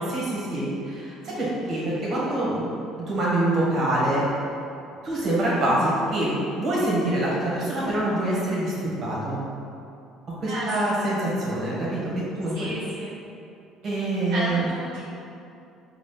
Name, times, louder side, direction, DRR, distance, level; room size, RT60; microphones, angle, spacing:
voice 1, 0.0-2.6 3.1-4.2 5.0-8.7 9.0-9.4 10.4-12.7 13.8-14.6, right 1 dB, 50° right, -7 dB, 1.5 m, -25 dB
voice 2, 1.2-1.6 10.5-10.9 12.5-13.1 14.3-15.0, equal, 75° right, -9 dB, 0.9 m, -33 dB
4.0 x 2.5 x 3.4 m, 2.6 s
supercardioid pair, 85°, 0 cm